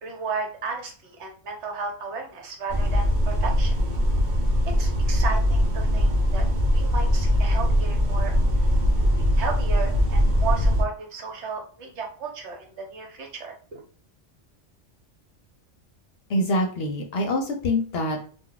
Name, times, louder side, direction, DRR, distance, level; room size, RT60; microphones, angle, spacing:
voice 1, 0.0-3.8 4.8-6.4 6.7-8.3 9.2-13.8, right 5 dB, 70° right, 2 dB, 1.1 m, -34 dB
sound 1, 2.7-10.8, equal, 50° right, 0.6 m, -21 dB
voice 2, 16.3-18.3, left 1 dB, 60° left, 3 dB, 0.8 m, -25 dB
2.3 x 2.2 x 3.8 m, 0.41 s
omnidirectional pair, 1.2 m